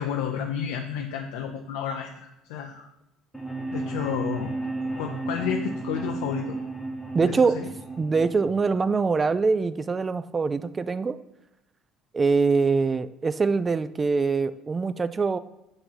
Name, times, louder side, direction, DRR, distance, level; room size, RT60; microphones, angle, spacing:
voice 1, 0.0-2.8 3.7-4.5 5.0-6.6 7.2-7.7, left 8 dB, 80° left, 2 dB, 0.5 m, -31 dB
sound 1, 3.3-9.3, right 2 dB, ahead, 1.2 m, -33 dB
voice 2, 7.1-7.6 8.0-11.2 12.1-15.4, right 4 dB, 30° right, 14 dB, 0.4 m, -23 dB
7.7 x 2.9 x 5.5 m, 0.89 s
hypercardioid pair, 70°, 0 cm